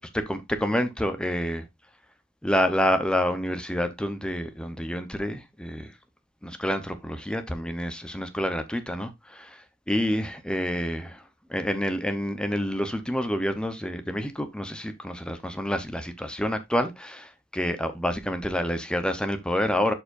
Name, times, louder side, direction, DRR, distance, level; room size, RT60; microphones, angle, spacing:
voice 1, 0.1-1.6 2.4-5.9 6.4-9.6 9.9-11.2 11.5-19.9, equal, 5° left, 0.7 m, -28 dB
11.5 x 4.5 x 2.5 m
head